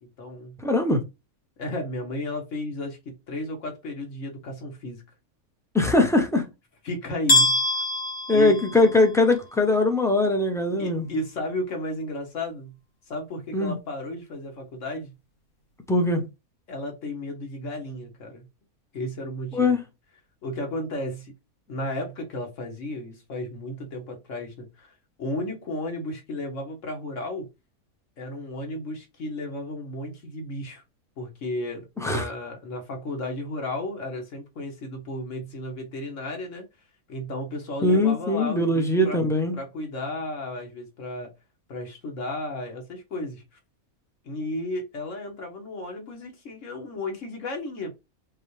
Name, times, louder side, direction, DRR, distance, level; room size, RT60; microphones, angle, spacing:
voice 1, 0.0-0.5 1.6-5.0 6.8-7.8 8.3-8.6 10.8-12.7 13.1-15.1 16.7-18.4 18.9-19.8 20.4-21.3 21.7-27.5 28.2-30.8 31.2-36.6 37.1-39.2 39.5-41.3 41.7-43.4 44.2-47.9, left 1 dB, 60° left, 1.6 m, -33 dB
voice 2, 0.6-1.0 5.7-6.5 8.3-11.1 13.5-13.8 15.9-16.2 19.5-19.8 32.0-32.3 37.8-39.6, left 2 dB, 5° left, 0.5 m, -21 dB
sound 1, 7.3-9.3, left 1 dB, 80° left, 1.9 m, -23 dB
5.7 x 2.4 x 3.2 m
omnidirectional pair, 1.5 m